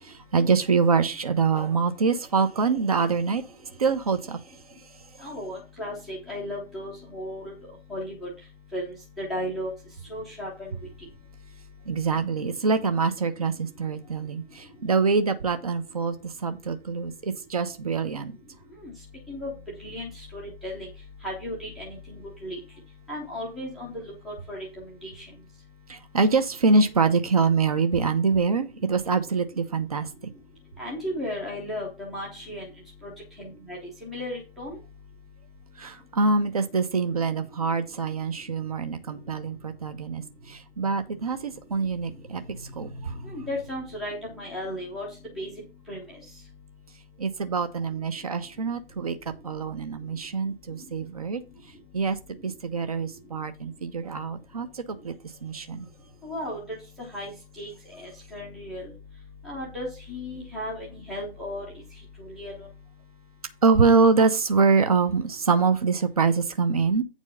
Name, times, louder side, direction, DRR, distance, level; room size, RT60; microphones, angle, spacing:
voice 1, 0.3-3.4 3.8-4.4 11.9-16.1 16.4-18.3 25.9-30.1 35.8-40.2 40.5-43.3 47.2-49.2 49.4-51.4 51.9-52.2 52.4-55.1 55.4-55.9 63.6-67.0, right 4 dB, 35° right, 9 dB, 0.9 m, -24 dB
voice 2, 5.2-7.5 7.9-8.3 8.7-9.7 10.1-10.7 18.8-18.9 19.3-19.5 19.8-20.9 21.2-22.6 23.1-24.7 25.0-25.3 30.8-32.6 33.0-33.1 33.4-34.8 43.2-45.1 45.4-45.5 45.9-46.2 56.2-56.6 57.0-58.8 59.4-61.6 62.2-62.7, left 1 dB, ahead, -5 dB, 0.7 m, -35 dB
8.7 x 4.6 x 5.4 m, 0.29 s
figure-of-eight pair, 140°, 32 cm